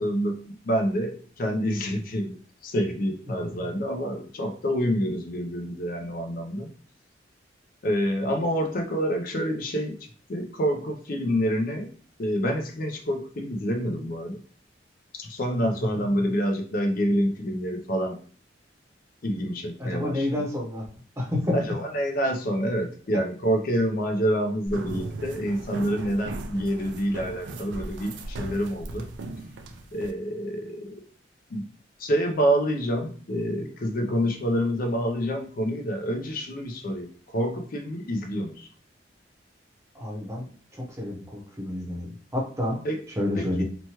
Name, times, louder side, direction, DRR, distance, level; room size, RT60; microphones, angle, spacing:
voice 1, 0.0-2.3 2.6-6.7 7.8-10.0 10.3-11.9 12.2-14.4 15.1-18.2 19.2-20.5 21.5-29.1 29.9-31.0 31.5-31.6 32.0-38.7 42.8-43.0 43.4-43.6, equal, 50° left, 5 dB, 0.5 m, -27 dB
voice 2, 19.8-20.9 21.2-21.5 39.9-40.5 41.0-42.8 43.2-43.6, left 1 dB, 15° right, -2 dB, 0.7 m, -29 dB
sound 1, 24.7-30.1, right 2 dB, 75° right, 0.4 m, -37 dB
2.9 x 2.2 x 2.9 m, 0.43 s
head